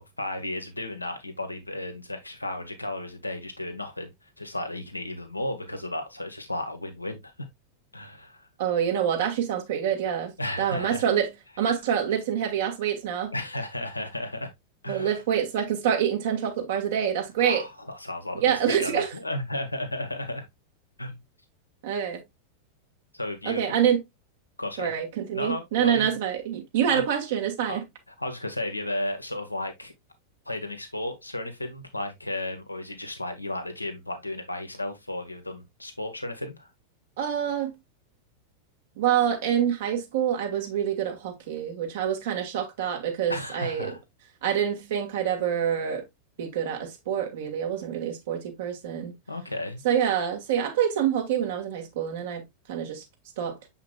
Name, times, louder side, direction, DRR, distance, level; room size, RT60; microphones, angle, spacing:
voice 1, 0.0-7.3 7.9-8.5 10.4-11.0 13.3-14.5 14.8-15.2 17.4-20.4 21.0-21.2 23.1-23.6 24.6-24.9 25.3-26.1 26.9-27.0 27.7-27.8 28.2-29.9 30.4-36.7 43.3-44.0 49.3-49.8, left 1 dB, 85° left, 1.5 m, -34 dB
voice 2, 8.6-11.3 11.6-13.3 14.9-17.6 18.4-19.1 21.8-22.2 23.5-24.0 24.8-27.8 37.2-37.7 39.0-43.9 44.4-46.0 46.4-49.2 49.8-52.4 52.7-53.0 53.4-53.6, right 9 dB, 55° right, 1.8 m, -26 dB
7.2 x 5.8 x 2.3 m
figure-of-eight pair, 90°, 0 cm